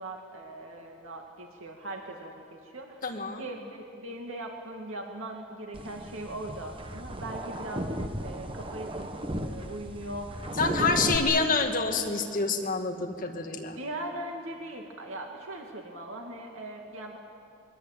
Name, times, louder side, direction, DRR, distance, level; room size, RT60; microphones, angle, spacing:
voice 1, 0.0-3.0 3.4-9.1 9.4-11.2 13.8-17.2, right 1 dB, 80° right, 1 dB, 2.4 m, -40 dB
voice 2, 3.0-3.5 10.6-13.8, left 4 dB, 40° left, 3 dB, 2.0 m, -27 dB
sound 1, 5.7-11.2, equal, 25° right, 1.2 m, -35 dB
23.5 x 22.5 x 9.1 m, 2.5 s
head